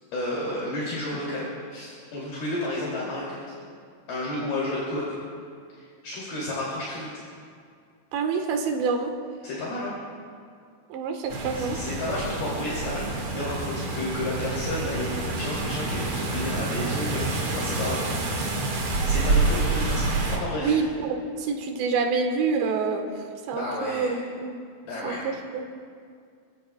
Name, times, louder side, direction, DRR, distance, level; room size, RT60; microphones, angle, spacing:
voice 1, 0.1-3.4 4.1-5.2 6.0-7.2 9.4-9.9 11.5-18.6 19.0-20.7 23.5-24.1 24.8-25.2, left 1 dB, 65° left, -6 dB, 4.6 m, -31 dB
voice 2, 8.1-9.1 10.9-11.8 20.6-24.6 25.0-25.7, right 4 dB, 80° right, 3 dB, 3.5 m, -27 dB
sound 1, 11.3-20.4, right 3 dB, 45° right, 1.9 m, -27 dB
29.5 x 15.0 x 2.3 m, 2.2 s
omnidirectional pair, 5.0 m